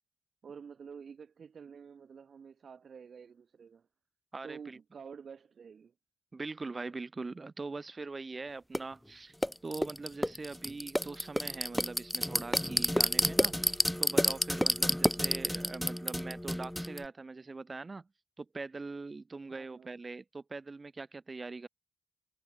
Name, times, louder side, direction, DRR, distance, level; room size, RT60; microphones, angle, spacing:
voice 1, 0.4-3.9 4.4-5.9 19.5-20.0, right 6 dB, 45° right, 4.2 m, -49 dB
voice 2, 4.3-4.8 6.3-9.3 9.6-18.1 18.4-21.7, right 3 dB, 25° right, 7.9 m, -42 dB
sound 1, 8.7-8.8 9.4-17.0, equal, 5° left, 1.4 m, -30 dB
cardioid pair, 110°, 0 cm